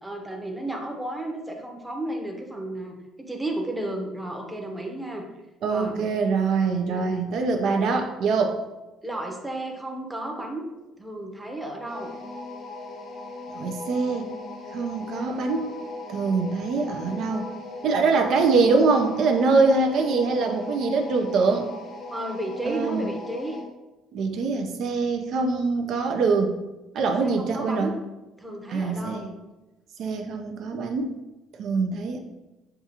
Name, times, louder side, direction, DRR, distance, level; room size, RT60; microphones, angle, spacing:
voice 1, 0.0-5.3 5.7-6.0 6.9-7.3 9.0-10.7 11.0-12.1 18.1-18.3 22.1-23.6 27.2-28.0 28.4-29.3, right 1 dB, 5° right, 2 dB, 0.7 m, -33 dB
voice 2, 5.6-8.6 13.5-14.3 14.7-15.8 16.1-17.5 17.8-21.7 22.7-23.0 24.1-26.6 26.9-27.9 28.7-29.3 30.0-31.1 31.6-32.2, right 4 dB, 60° right, 3 dB, 0.4 m, -23 dB
sound 1, 11.9-23.7, left 3 dB, 50° left, 0.7 m, -38 dB
6.7 x 2.4 x 2.8 m, 1.1 s
cardioid pair, 120°, 0 cm